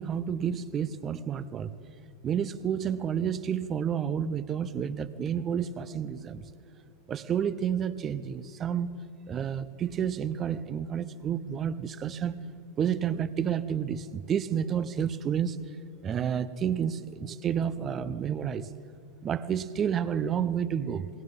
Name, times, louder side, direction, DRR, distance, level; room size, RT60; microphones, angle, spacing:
voice 1, 0.0-1.9 2.2-6.5 7.1-9.0 9.2-12.4 12.8-15.6 16.0-18.7 19.2-21.1, right 8 dB, 25° right, 16 dB, 0.9 m, -30 dB
29.0 x 22.0 x 5.4 m, 3.0 s
figure-of-eight pair, 90°, 0 cm